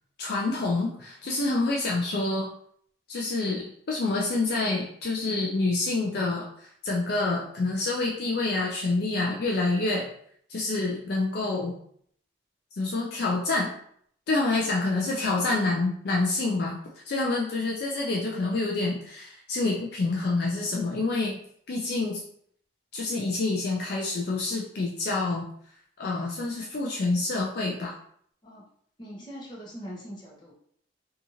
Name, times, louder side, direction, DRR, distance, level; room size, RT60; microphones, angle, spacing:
voice 1, 0.2-2.5 3.1-10.1 10.5-11.7 12.8-13.7 14.3-16.8 17.1-21.3 21.7-22.2 22.9-25.5 26.0-28.0, left 3 dB, 55° left, -2 dB, 0.4 m, -27 dB
voice 2, 29.0-30.5, equal, 25° left, -4 dB, 0.7 m, -41 dB
2.7 x 2.4 x 2.7 m, 0.64 s
head